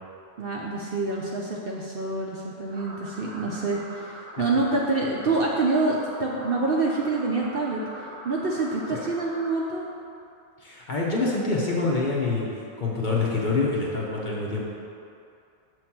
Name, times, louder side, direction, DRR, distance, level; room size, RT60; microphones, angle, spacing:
voice 1, 0.4-7.8 8.2-9.8, right 3 dB, 55° right, -3 dB, 0.7 m, -26 dB
sound 1, 2.7-9.6, right 1 dB, 35° right, 1.0 m, -43 dB
voice 2, 10.6-12.5 12.8-14.6, left 3 dB, 40° left, -4 dB, 0.9 m, -26 dB
6.9 x 3.1 x 5.8 m, 2.6 s
omnidirectional pair, 1.3 m